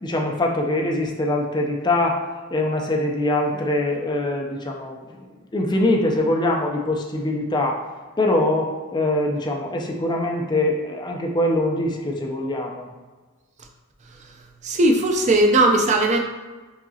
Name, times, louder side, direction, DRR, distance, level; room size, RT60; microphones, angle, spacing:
voice 1, 0.0-2.2 2.5-5.0 5.5-7.8 8.2-12.9, left 1 dB, 20° left, 1 dB, 0.5 m, -23 dB
voice 2, 14.6-16.2, right 2 dB, 35° right, 3 dB, 0.4 m, -18 dB
4.7 x 2.9 x 2.7 m, 1.3 s
head